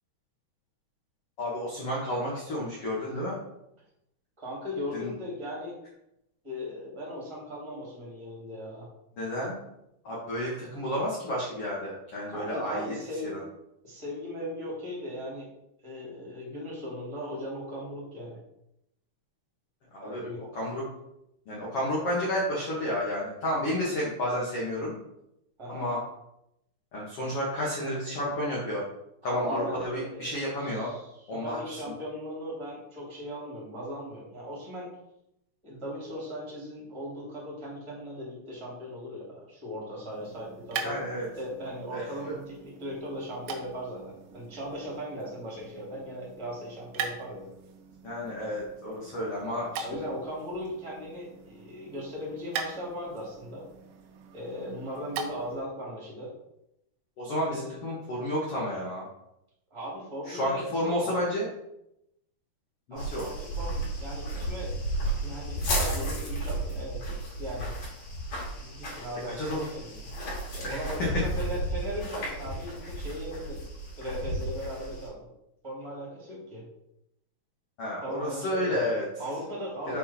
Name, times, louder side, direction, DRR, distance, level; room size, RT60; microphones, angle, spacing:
voice 1, 1.4-3.4 4.9-5.1 9.2-9.6 10.0-13.0 13.2-13.4 19.9-20.2 20.5-20.8 21.4-24.9 25.7-26.0 26.9-28.8 29.2-30.9 31.3-31.8 40.8-41.3 41.9-42.0 48.0-49.8 57.2-59.1 60.2-61.5 62.9-63.3 69.3-69.6 70.6-71.1 77.8-79.1 79.9-80.0, left 1 dB, 70° left, -5 dB, 1.4 m, -31 dB
voice 2, 4.4-5.7 6.4-8.9 12.3-13.3 13.8-15.5 15.8-18.4 20.0-20.4 25.6-25.9 29.2-30.3 30.6-34.9 35.6-47.5 49.8-53.6 54.3-56.3 57.5-57.7 59.7-61.1 62.9-64.7 65.2-67.0 67.4-67.7 68.6-70.0 70.5-73.6 74.0-75.2 75.6-76.6 78.0-78.9 79.2-80.0, equal, 10° right, -5 dB, 1.6 m, -38 dB
sound 1, 40.1-55.7, right 5 dB, 75° right, 2.9 m, -42 dB
sound 2, 63.0-75.1, right 1 dB, 45° left, 3.1 m, -33 dB
7.4 x 4.7 x 4.3 m, 0.83 s
omnidirectional pair, 5.2 m